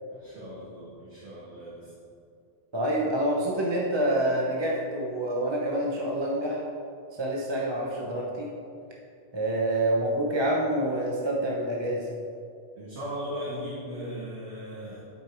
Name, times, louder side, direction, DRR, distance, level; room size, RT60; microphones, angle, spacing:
voice 1, 0.1-1.9 12.8-15.0, equal, 70° right, -9 dB, 2.0 m, -38 dB
voice 2, 2.7-6.6 7.1-8.5 9.3-12.1, right 1 dB, 25° right, -3 dB, 0.9 m, -27 dB
11.0 x 5.5 x 4.5 m, 2.4 s
omnidirectional pair, 1.2 m